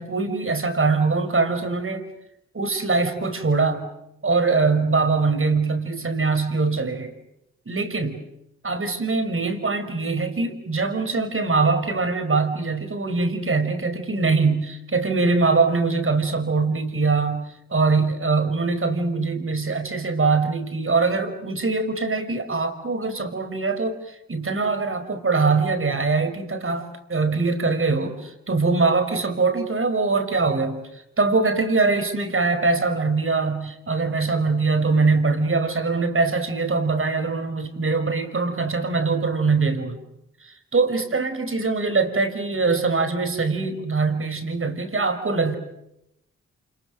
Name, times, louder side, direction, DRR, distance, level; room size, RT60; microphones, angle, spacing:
voice 1, 0.0-2.1 2.5-3.9 4.2-7.1 7.7-8.2 8.6-17.4 17.7-40.0 40.4-45.6, right 4 dB, 40° right, 6 dB, 5.3 m, -23 dB
28.5 x 27.5 x 6.6 m, 0.83 s
supercardioid pair, 40°, 32 cm